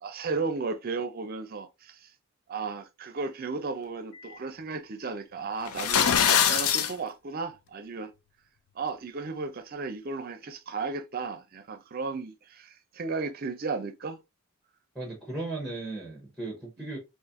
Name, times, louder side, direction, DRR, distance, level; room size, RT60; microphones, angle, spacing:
voice 1, 0.0-2.1 2.5-6.0 6.3-8.1 8.8-14.2 16.8-16.9, right 4 dB, 40° right, 0.5 m, -34 dB
sound 1, 5.7-6.9, left 8 dB, 75° left, 0.5 m, -23 dB
voice 2, 14.9-17.0, right 2 dB, ahead, 0.8 m, -36 dB
4.1 x 2.5 x 2.5 m
head